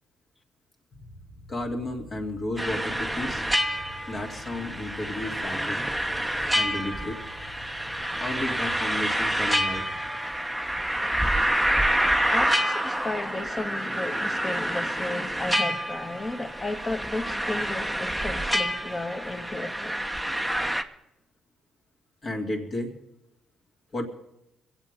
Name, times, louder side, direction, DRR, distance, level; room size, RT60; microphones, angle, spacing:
sound 1, 0.9-10.1, left 1 dB, 75° left, 3.3 m, -47 dB
voice 1, 1.5-3.4 4.1-5.9 6.5-7.2 8.2-9.8 22.2-22.9 23.9-24.0, left 1 dB, 45° left, 3.1 m, -33 dB
sound 2, 2.6-20.8, equal, ahead, 0.9 m, -28 dB
voice 2, 12.3-20.0, left 2 dB, 25° left, 1.9 m, -33 dB
23.0 x 8.1 x 5.5 m
cardioid pair, 90°, 0 cm